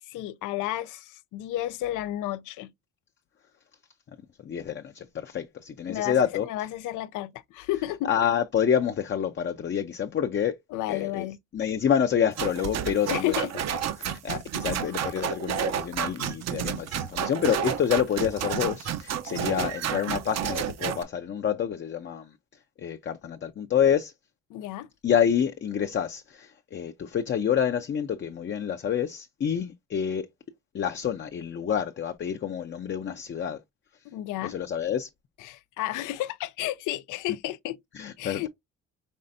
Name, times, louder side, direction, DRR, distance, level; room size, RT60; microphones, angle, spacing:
voice 1, 0.0-2.7 5.9-6.2 6.4-8.1 10.7-11.4 13.1-13.5 24.5-24.9 34.1-34.5 35.4-37.8 38.2-38.5, left 14 dB, 90° left, 0.5 m, -32 dB
voice 2, 4.4-6.5 8.0-10.6 10.9-11.3 11.5-13.4 14.0-22.4 22.8-24.1 25.0-30.3 30.7-33.6 34.4-35.1 37.9-38.5, left 8 dB, 40° left, 0.5 m, -28 dB
sound 1, 12.4-21.0, right 9 dB, 60° right, 0.7 m, -30 dB
5.4 x 3.3 x 2.5 m
cardioid pair, 90°, 30 cm